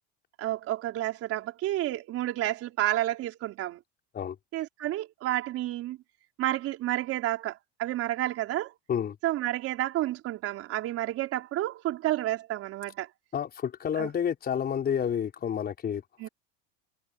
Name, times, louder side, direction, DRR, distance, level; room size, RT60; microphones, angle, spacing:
voice 1, 0.4-3.8 4.5-6.0 6.4-8.7 9.2-13.1 14.0-14.1 16.2-16.3, right 14 dB, 45° right, 4.5 m, -30 dB
voice 2, 13.3-16.3, left 8 dB, 30° left, 5.1 m, -30 dB
supercardioid pair, 125°, 31 cm